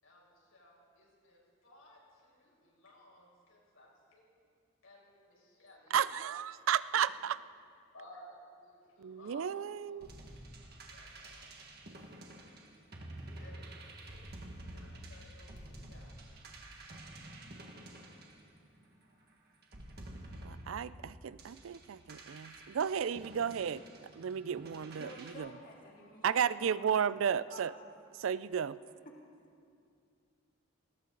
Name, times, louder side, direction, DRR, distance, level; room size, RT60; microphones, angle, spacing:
voice 1, 0.0-4.4 4.8-6.0 7.1-7.2 7.9-10.0 10.9-11.6 11.8-12.1 12.9-14.3 14.6-16.3, left 1 dB, 85° left, -3 dB, 5.2 m, -59 dB
voice 2, 5.9-7.4 9.0-10.2 20.4-23.8 24.2-25.1 25.4-25.5 26.2-27.7 28.2-28.8, right 8 dB, 70° right, 17 dB, 0.4 m, -33 dB
sound 1, 10.0-19.0 19.6-25.3, right 1 dB, 50° right, 1.7 m, -50 dB
voice 3, 24.9-26.9 27.1-27.7 29.0-29.2, left 2 dB, 40° left, -2 dB, 2.0 m, -52 dB
19.5 x 17.0 x 3.9 m, 2.4 s
head